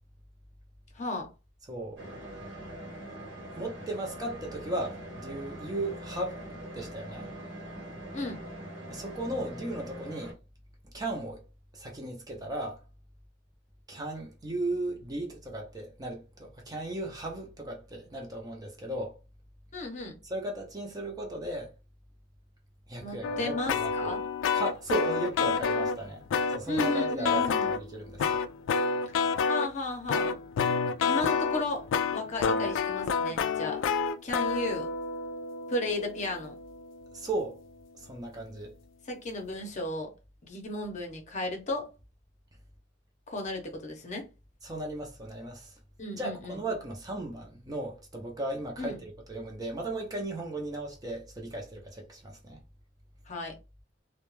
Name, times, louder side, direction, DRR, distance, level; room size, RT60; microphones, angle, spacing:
voice 1, 0.9-1.3 8.1-8.4 19.7-20.2 23.0-24.2 26.7-27.8 29.5-30.4 31.0-31.8 32.1-33.8 34.2-34.9 35.7-36.5 39.1-40.1 40.4-41.9 43.3-44.3 46.0-46.6 48.8-49.0 53.3-53.5, left 2 dB, 40° left, 0.7 m, -34 dB
voice 2, 1.7-2.1 3.6-6.4 6.7-7.3 8.9-10.4 10.9-11.4 11.7-12.8 13.9-19.2 20.2-21.7 22.9-24.1 24.5-26.2 26.5-28.4 37.1-37.6 38.0-38.7 44.6-45.7 46.1-49.0 49.3-52.6, right 1 dB, 20° right, 0.5 m, -36 dB
sound 1, 2.0-10.3, right 1 dB, 75° right, 1.0 m, -43 dB
sound 2, 23.2-26.0 26.3-27.8 28.2-29.7 30.1-37.1, left 5 dB, 90° left, 0.3 m, -29 dB
2.3 x 2.1 x 3.1 m
head